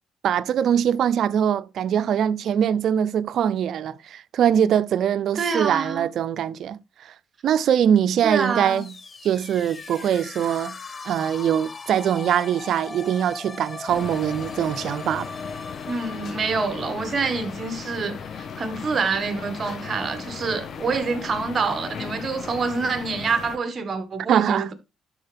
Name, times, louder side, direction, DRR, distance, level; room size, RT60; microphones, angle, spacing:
voice 1, 0.2-6.8 7.4-8.9 9.2-10.8 11.0-15.3 24.3-24.7, right 9 dB, 70° right, 0.4 m, -22 dB
voice 2, 5.3-6.1 8.2-8.8 15.9-24.7, right 4 dB, 45° right, 1.6 m, -26 dB
sound 1, 8.3-18.1, left 4 dB, 35° left, 1.0 m, -40 dB
sound 2, 13.9-23.6, left 6 dB, 60° left, 1.0 m, -37 dB
12.5 x 4.4 x 3.4 m
cardioid pair, 90°, 0 cm